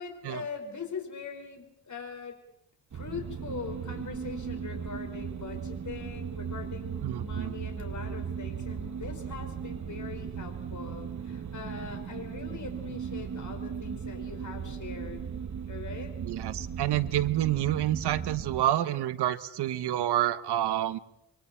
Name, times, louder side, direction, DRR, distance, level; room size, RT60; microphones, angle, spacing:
voice 1, 0.0-2.4 2.9-15.2 15.7-16.1, left 5 dB, 50° left, 4 dB, 5.3 m, -41 dB
sound 1, 2.9-18.6, right 7 dB, 45° right, 1.2 m, -37 dB
voice 2, 7.0-7.6 16.2-21.0, right 13 dB, 90° right, 13 dB, 1.1 m, -28 dB
28.0 x 23.5 x 4.5 m, 0.80 s
cardioid pair, 95°, 39 cm